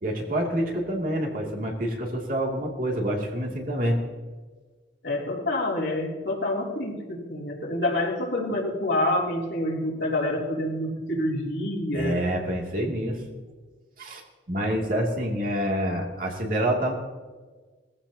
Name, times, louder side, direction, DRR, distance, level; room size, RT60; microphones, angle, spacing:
voice 1, 0.0-4.0 11.9-13.2 14.0-14.2 14.5-16.9, right 1 dB, 50° right, 0 dB, 2.7 m, -27 dB
voice 2, 5.0-12.1, left 1 dB, 80° left, -2 dB, 3.1 m, -27 dB
20.5 x 15.0 x 2.9 m, 1.4 s
head